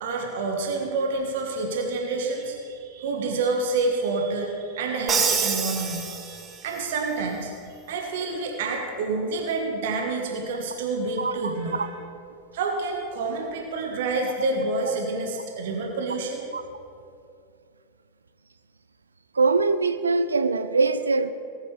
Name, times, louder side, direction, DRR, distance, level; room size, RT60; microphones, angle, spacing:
voice 1, 0.0-7.5 7.9-11.9 12.5-16.5, right 3 dB, 55° right, 1 dB, 1.5 m, -28 dB
Crash cymbal, 5.1-6.8, right 6 dB, 20° right, 1.1 m, -26 dB
voice 2, 11.2-11.5 11.8-11.9 16.5-16.6 19.3-21.3, right 4 dB, 75° right, 11 dB, 0.5 m, -22 dB
19.0 x 9.1 x 3.4 m, 2.4 s
figure-of-eight pair, 90°, 0 cm